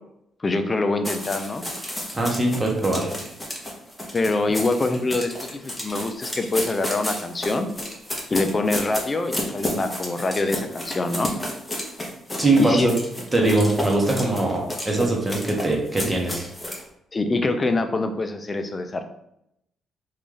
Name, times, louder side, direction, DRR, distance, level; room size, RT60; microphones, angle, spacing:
voice 1, 0.4-1.7 4.1-5.3 5.6-7.7 8.3-11.3 12.6-12.9 17.1-19.0, left 2 dB, 30° left, 7 dB, 0.5 m, -24 dB
sound 1, 1.0-16.8, left 1 dB, 10° left, 0.9 m, -32 dB
voice 2, 2.1-3.1 12.4-12.9 13.3-16.5, right 2 dB, 15° right, -1 dB, 1.0 m, -21 dB
3.2 x 2.5 x 3.7 m, 0.78 s
cardioid pair, 90°, 0 cm